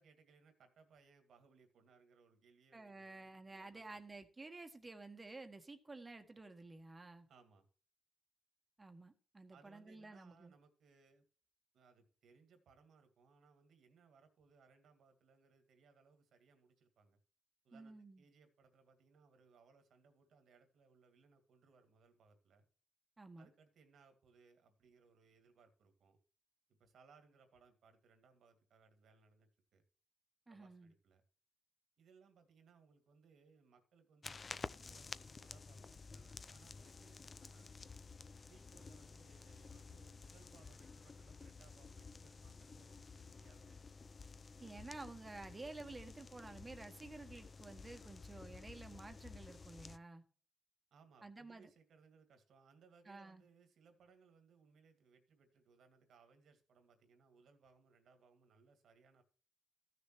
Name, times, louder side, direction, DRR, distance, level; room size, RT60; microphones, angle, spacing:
voice 1, 0.0-4.0 7.3-7.7 9.5-11.2 11.7-17.2 17.6-22.7 23.4-26.2 26.8-29.8 30.5-31.2 32.0-37.8 38.4-43.8 50.9-59.2, right 5 dB, 75° right, 7 dB, 2.2 m, -68 dB
voice 2, 2.7-7.3 8.8-10.5 17.7-18.2 23.2-23.5 30.5-30.9 44.6-50.2 51.2-51.7 53.1-53.4, right 3 dB, 20° right, 7 dB, 1.4 m, -52 dB
sound 1, 34.2-50.0, left 4 dB, 35° left, 0.5 m, -53 dB
15.0 x 6.6 x 3.1 m, 0.42 s
cardioid pair, 110°, 0 cm